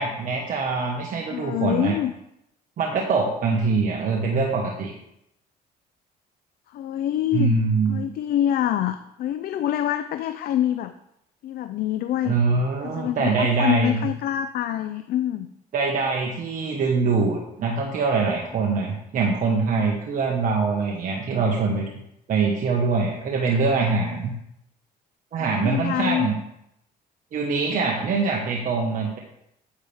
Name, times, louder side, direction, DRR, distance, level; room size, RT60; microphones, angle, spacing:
voice 1, 0.0-2.0 2.8-4.9 7.3-8.1 12.2-14.0 15.7-21.9 22.3-24.3 25.3-26.4 27.3-29.2, right 4 dB, 55° right, -1 dB, 1.5 m, -23 dB
voice 2, 1.3-2.1 6.7-7.6 7.9-10.9 11.4-12.4 12.8-15.5 25.4-26.3, left 11 dB, 65° left, 10 dB, 0.5 m, -26 dB
9.8 x 8.5 x 3.6 m, 0.80 s
cardioid pair, 110°, 17 cm